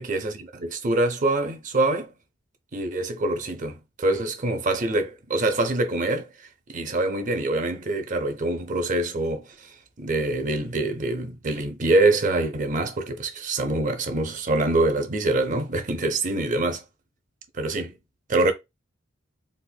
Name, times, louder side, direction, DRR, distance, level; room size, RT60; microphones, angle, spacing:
voice 1, 0.0-2.1 2.7-16.8 17.5-18.0 18.3-18.5, right 2 dB, 40° right, 0.6 m, -25 dB
4.2 x 2.5 x 2.2 m
head